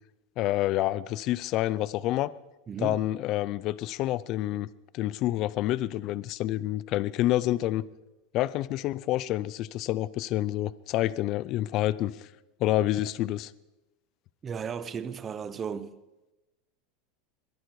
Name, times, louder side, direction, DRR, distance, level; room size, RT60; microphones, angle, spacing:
voice 1, 0.4-2.3 2.8-4.7 4.9-7.8 8.3-12.1 12.6-13.5, left 14 dB, 45° left, 0.5 m, -28 dB
voice 2, 2.7-3.0 14.4-15.9, right 7 dB, 25° right, 0.8 m, -35 dB
22.0 x 11.0 x 4.8 m
supercardioid pair, 140°, 0 cm